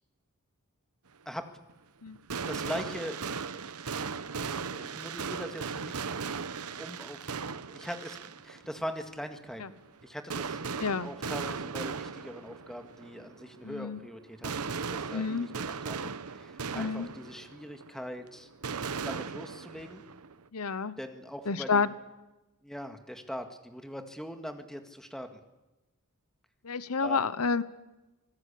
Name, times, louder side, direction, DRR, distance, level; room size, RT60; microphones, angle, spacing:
sound 1, 1.7-1.8 2.1-20.4, right 5 dB, 85° right, 1.0 m, -38 dB
voice 1, 2.5-3.2 4.4-6.1 6.8-7.3 7.7-18.5 19.1-20.0 21.0-21.9 22.6-25.4 27.0-27.2, equal, ahead, 6 dB, 1.9 m, -41 dB
voice 2, 13.6-14.0 15.1-15.5 16.7-17.1 20.5-20.9 21.5-21.9 26.6-27.6, left 5 dB, 80° left, 16 dB, 1.0 m, -29 dB
25.5 x 19.0 x 8.5 m, 1.0 s
head